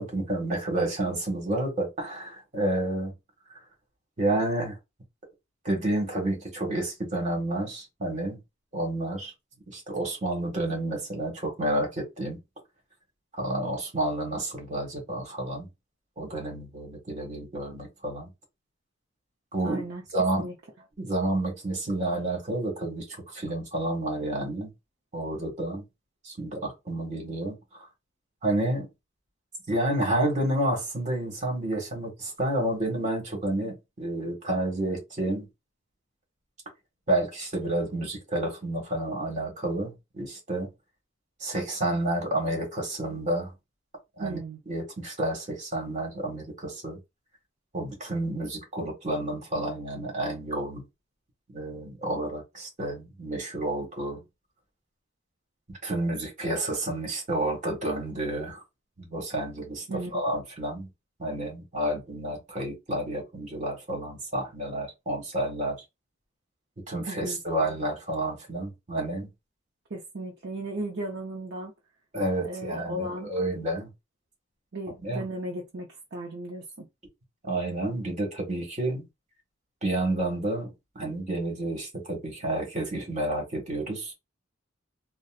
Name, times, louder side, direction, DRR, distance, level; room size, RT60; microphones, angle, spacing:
voice 1, 0.0-3.1 4.2-4.8 5.6-8.4 8.7-9.3 9.7-12.4 13.3-15.7 16.2-18.3 19.5-19.9 20.1-20.5 21.0-24.7 25.1-25.8 26.2-27.6 28.4-28.9 29.7-35.5 37.1-40.7 41.4-43.5 44.2-44.4 44.7-47.0 47.7-50.8 51.5-54.2 55.7-58.6 59.0-59.8 60.1-60.9 61.2-65.7 66.9-69.3 72.1-73.9 75.0-75.2 77.4-79.1 79.8-84.1, right 1 dB, 35° right, 1.6 m, -30 dB
voice 2, 19.6-20.0 20.4-20.5 44.2-44.6 59.9-60.2 67.1-67.4 69.9-71.7 72.4-73.3 74.7-76.9, right 1 dB, 55° right, 0.7 m, -36 dB
3.9 x 2.2 x 2.4 m
head